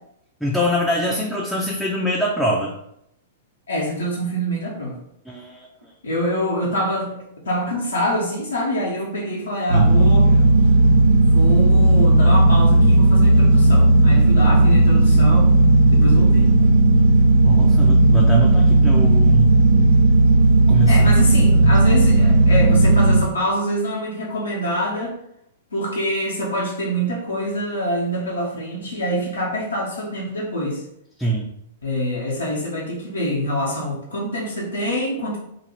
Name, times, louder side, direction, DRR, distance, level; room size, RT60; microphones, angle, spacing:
voice 1, 0.4-2.7 5.3-5.7 9.7-10.0 17.4-19.6 20.7-21.1 21.6-21.7 31.2-31.5, equal, ahead, -5 dB, 0.4 m, -23 dB
voice 2, 3.7-5.0 6.0-10.3 11.2-15.6 15.9-16.5 20.9-25.1 25.7-30.8 31.8-35.4, equal, 80° left, -4 dB, 0.7 m, -25 dB
sound 1, 9.7-23.2, right 2 dB, 80° right, 1.0 m, -14 dB
2.6 x 2.1 x 3.2 m, 0.77 s
figure-of-eight pair, 110°, 0 cm